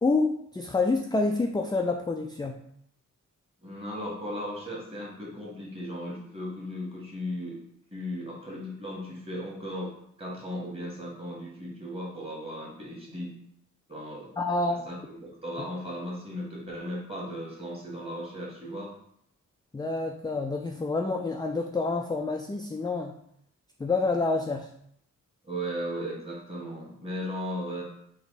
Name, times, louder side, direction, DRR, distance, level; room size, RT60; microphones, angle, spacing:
voice 1, 0.0-2.6 14.4-14.8 19.7-23.2 23.8-24.7, left 3 dB, 15° left, 3 dB, 0.3 m, -28 dB
voice 2, 3.6-7.6 7.9-9.9 10.2-13.3 13.9-14.3 14.8-18.9 25.4-27.8, equal, 20° right, -3 dB, 1.7 m, -36 dB
3.5 x 2.9 x 4.0 m, 0.70 s
cardioid pair, 70°, 32 cm